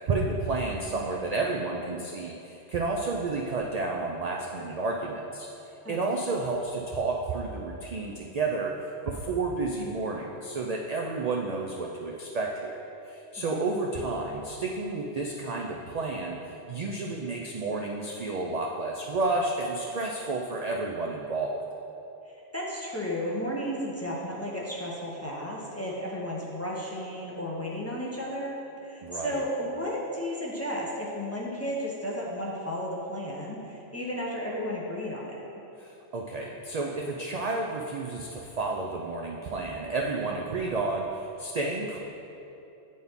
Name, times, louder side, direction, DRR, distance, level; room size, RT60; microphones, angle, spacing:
voice 1, 0.0-5.5 5.9-8.7 9.0-16.4 16.7-21.6 29.0-29.4 35.8-42.0, right 3 dB, 60° right, 0 dB, 0.4 m, -31 dB
voice 2, 22.3-35.4, equal, 15° left, -4 dB, 0.6 m, -33 dB
9.1 x 4.2 x 3.5 m, 2.8 s
omnidirectional pair, 1.2 m